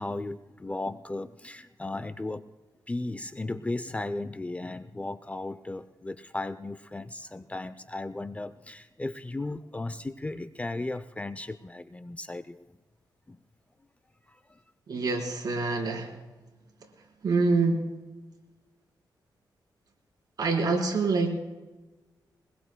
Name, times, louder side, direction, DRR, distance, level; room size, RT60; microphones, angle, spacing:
voice 1, 0.0-2.5 2.9-12.6 13.3-13.4 14.3-14.4, left 2 dB, 15° left, 12 dB, 0.5 m, -35 dB
voice 2, 14.9-16.1 17.2-17.8 20.4-21.4, right 3 dB, 60° right, -1 dB, 3.9 m, -26 dB
22.5 x 21.5 x 2.2 m, 1.1 s
cardioid pair, 90°, 8 cm